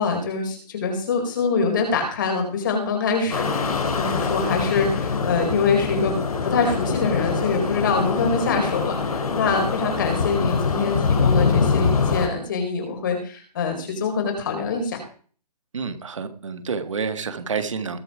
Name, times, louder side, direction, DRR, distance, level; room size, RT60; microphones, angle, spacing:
voice 1, 0.0-6.2 6.4-15.0, left 5 dB, 30° left, 3 dB, 4.4 m, -24 dB
sound 1, 3.3-12.3, left 4 dB, 60° left, 3.4 m, -23 dB
voice 2, 15.7-18.0, right 5 dB, 45° right, 10 dB, 2.0 m, -29 dB
21.0 x 7.8 x 5.0 m, 0.43 s
hypercardioid pair, 175°, 21 cm